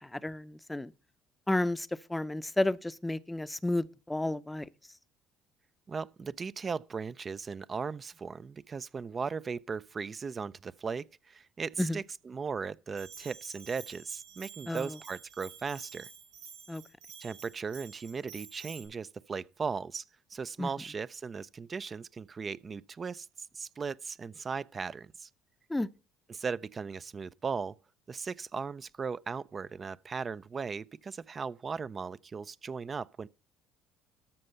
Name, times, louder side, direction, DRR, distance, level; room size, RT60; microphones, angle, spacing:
voice 1, 0.1-0.9 1.5-4.7 11.8-12.0 14.7-14.9 16.7-16.8 20.6-20.7 25.7-25.9, left 1 dB, 10° left, 0.6 m, -31 dB
voice 2, 5.9-16.1 17.2-20.0 20.3-25.3 26.3-27.7 28.1-33.3, right 5 dB, 35° right, 0.4 m, -37 dB
Bell, 13.0-18.8, right 7 dB, 80° right, 4.5 m, -50 dB
13.0 x 5.4 x 5.5 m
supercardioid pair, 70°, 0 cm